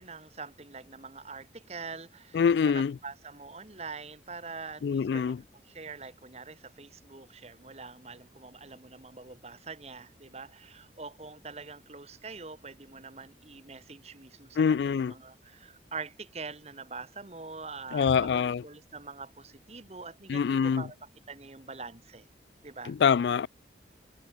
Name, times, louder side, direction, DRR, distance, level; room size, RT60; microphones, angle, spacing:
voice 1, 0.0-22.3 22.6-23.0, right 4 dB, 35° right, 1.4 m, -44 dB
voice 2, 2.3-3.0 4.8-5.4 14.6-15.1 17.9-18.6 20.3-20.8 22.9-23.5, left 6 dB, 75° left, 0.3 m, -25 dB
head